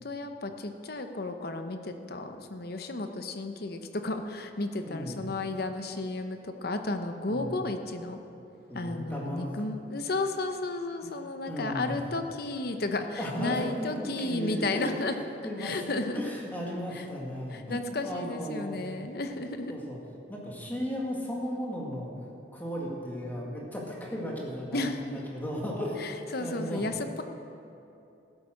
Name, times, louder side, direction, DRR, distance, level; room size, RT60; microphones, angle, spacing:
voice 1, 0.0-8.2 8.7-15.2 15.6-16.2 16.9-17.1 17.5-19.7 24.7-25.2 26.0-27.2, left 2 dB, 55° left, 7 dB, 0.8 m, -33 dB
voice 2, 4.8-5.2 7.3-7.6 8.7-9.5 11.5-12.0 13.2-15.0 15.4-15.8 16.1-18.8 19.7-20.0 20.3-22.1 22.5-26.8, equal, 10° left, -3 dB, 2.0 m, -35 dB
14.5 x 8.3 x 6.4 m, 2.8 s
head